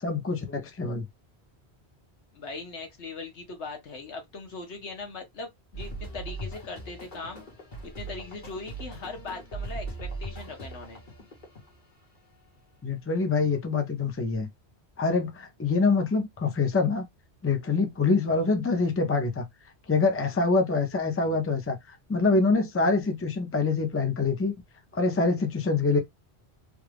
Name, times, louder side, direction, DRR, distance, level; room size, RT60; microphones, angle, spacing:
voice 1, 0.0-1.1 12.8-14.5 15.0-17.0 17.4-19.5 19.9-24.5 24.9-26.0, left 4 dB, 15° left, 0.6 m, -25 dB
voice 2, 2.3-7.5 7.9-11.0, left 3 dB, 90° left, 1.4 m, -40 dB
sound 1, 5.7-11.8, right 2 dB, 50° left, 1.5 m, -39 dB
3.3 x 2.4 x 3.3 m
omnidirectional pair, 1.1 m